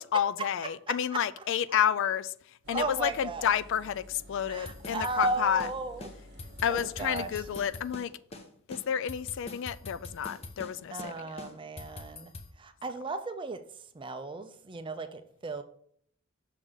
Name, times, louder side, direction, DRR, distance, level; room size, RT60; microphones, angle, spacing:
voice 1, 0.0-5.7 6.6-8.1 8.7-11.4, left 9 dB, 60° left, 15 dB, 0.3 m, -30 dB
Engine, 2.6-7.7, equal, 50° right, 0.9 m, -51 dB
voice 2, 2.7-3.5 4.5-6.1 6.7-7.3 10.9-15.6, right 2 dB, 25° right, 8 dB, 0.4 m, -35 dB
sound 1, 4.7-5.7 6.0-6.1 6.4-8.1 8.3-8.4 8.7-10.7 11.0-11.1 11.4-12.5, left 2 dB, 30° left, 0.9 m, -43 dB
6.5 x 3.8 x 6.2 m, 0.63 s
head